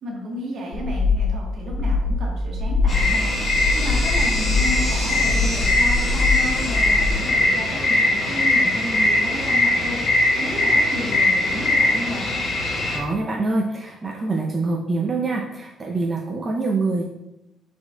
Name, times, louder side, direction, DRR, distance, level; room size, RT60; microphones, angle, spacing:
voice 1, 0.0-12.3, equal, 65° right, -2 dB, 1.3 m, -32 dB
sound 1, 0.7-7.1, left 3 dB, 75° left, 0.5 m, -23 dB
sound 2, 2.9-13.0, left 2 dB, 50° left, 1.5 m, -21 dB
voice 2, 12.9-17.0, right 3 dB, 35° right, -1 dB, 0.5 m, -25 dB
4.3 x 4.3 x 2.3 m, 0.91 s
supercardioid pair, 65°, 0 cm